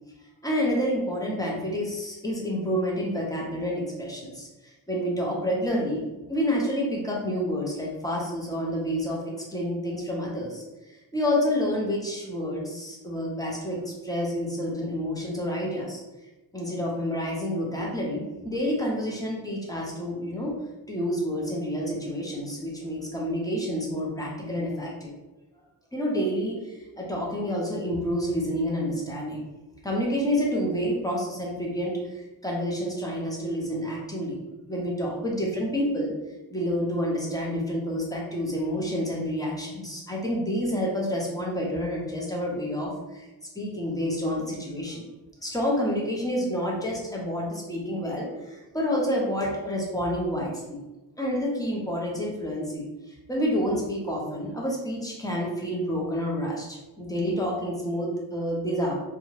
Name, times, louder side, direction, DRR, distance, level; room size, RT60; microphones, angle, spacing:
voice 1, 0.4-6.0 6.3-10.6 11.1-16.0 16.5-20.5 20.9-25.1 25.9-29.4 29.8-34.4 34.7-36.1 36.5-43.3 43.5-45.0 45.4-50.8 51.2-59.0, equal, 10° left, -3 dB, 0.8 m, -29 dB
2.7 x 2.3 x 3.1 m, 1.0 s
cardioid pair, 110°, 42 cm